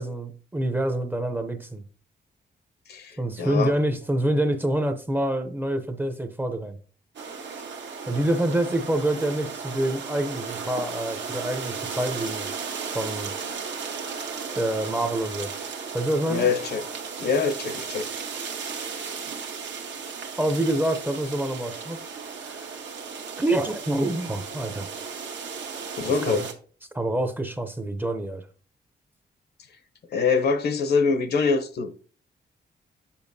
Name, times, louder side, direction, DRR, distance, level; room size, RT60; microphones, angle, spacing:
voice 1, 0.0-1.8 3.2-6.8 8.1-12.5 12.9-13.3 14.6-15.5 15.9-16.5 20.4-22.0 22.4-22.7 23.4-24.9 26.2-26.5 26.9-28.5, right 1 dB, 10° right, 0.6 m, -26 dB
voice 2, 2.9-3.7 16.3-16.9 17.2-18.1 25.9-26.5 30.1-31.9, left 5 dB, 65° left, 0.8 m, -24 dB
sound 1, 7.1-26.5, right 5 dB, 85° right, 1.2 m, -35 dB
7.7 x 7.0 x 2.7 m
wide cardioid pair, 170°, 18 cm